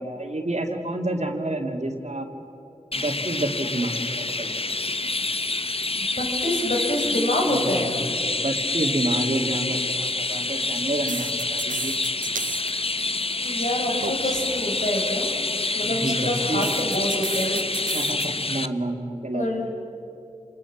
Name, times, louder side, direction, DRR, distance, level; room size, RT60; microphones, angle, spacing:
voice 1, 0.0-2.3 2.9-4.6 7.5-8.0 8.4-11.9 15.7-16.8 17.8-19.4, right 1 dB, 55° right, 3 dB, 2.8 m, -29 dB
Chirp tweet, 2.9-18.7, left 3 dB, 45° left, 0.8 m, -27 dB
voice 2, 5.9-7.9 13.4-15.3 15.7-17.6 19.3-19.7, left 1 dB, 65° left, 0 dB, 5.3 m, -26 dB
sound 1, 9.9-10.1 11.1-12.7 13.0-13.4 14.0-14.4 16.6-18.3, right 4 dB, 80° right, 0.7 m, -33 dB
29.5 x 21.0 x 7.4 m, 3.0 s
wide cardioid pair, 40°, 14 cm